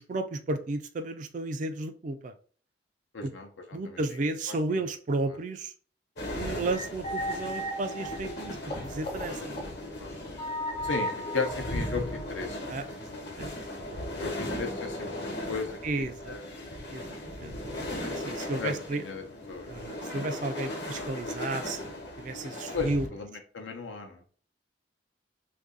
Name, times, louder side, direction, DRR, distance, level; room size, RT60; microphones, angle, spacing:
voice 1, 0.0-2.3 3.2-3.3 3.7-5.7 6.4-9.6 12.7-14.0 15.8-16.4 16.9-19.0 19.7-23.1, right 2 dB, 40° right, 8 dB, 0.3 m, -33 dB
voice 2, 3.1-3.5 3.8-4.0 10.0-10.3 10.8-12.8 14.2-16.4 18.6-19.7 22.7-24.2, left 4 dB, 90° left, 3 dB, 0.7 m, -35 dB
sound 1, 6.2-23.1, left 1 dB, 60° left, 1.0 m, -37 dB
sound 2, 6.7-9.2 9.6-9.7 10.4-12.6, equal, 30° left, 0.6 m, -35 dB
2.7 x 2.6 x 3.7 m, 0.42 s
head